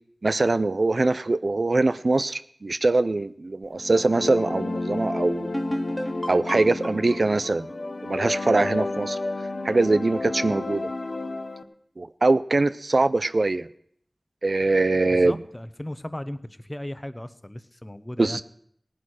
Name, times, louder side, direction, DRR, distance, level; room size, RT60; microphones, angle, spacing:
voice 1, 0.2-5.5 6.3-7.7 8.0-9.2 9.6-10.9 12.0-13.7 14.4-15.4 18.2-18.4, right 2 dB, 75° right, 14 dB, 0.5 m, -22 dB
sound 1, 3.7-11.6, left 2 dB, 85° left, 0.9 m, -31 dB
sound 2, 5.5-9.1, equal, 5° right, 1.0 m, -34 dB
voice 2, 15.2-16.4 16.7-18.4, left 1 dB, 20° left, 13 dB, 0.9 m, -36 dB
17.5 x 9.8 x 6.3 m, 0.66 s
wide cardioid pair, 50°, 0 cm